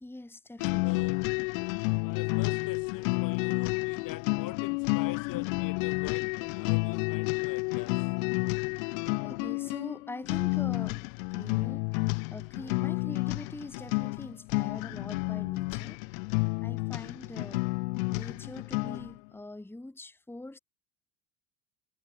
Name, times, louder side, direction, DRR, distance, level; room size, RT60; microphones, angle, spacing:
voice 1, 0.0-1.1 8.8-11.9 12.3-16.0 16.6-17.7 18.1-20.6, left 2 dB, 5° left, 1.8 m, -44 dB
sound 1, 0.6-19.1, left 32 dB, 65° left, 0.7 m, -30 dB
voice 2, 0.8-1.3 2.0-8.1, left 14 dB, 50° left, 2.5 m, -44 dB
hypercardioid pair, 80°, 43 cm